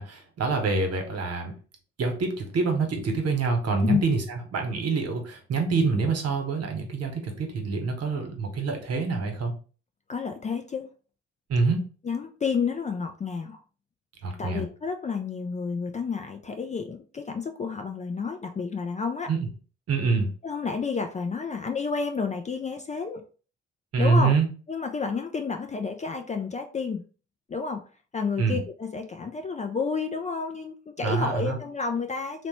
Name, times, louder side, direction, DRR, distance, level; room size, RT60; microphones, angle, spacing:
voice 1, 0.0-1.5 2.0-9.5 11.5-11.9 14.2-14.7 19.3-19.5 19.9-20.3 23.9-24.5 28.4-28.6 31.0-31.6, right 4 dB, 50° right, 4 dB, 0.9 m, -26 dB
voice 2, 10.1-10.9 12.0-13.6 14.4-19.3 20.4-23.2 24.0-24.4 24.7-27.0 27.5-27.8 28.1-32.5, left 5 dB, 25° left, 5 dB, 0.4 m, -30 dB
3.0 x 2.0 x 3.0 m, 0.37 s
hypercardioid pair, 45°, 32 cm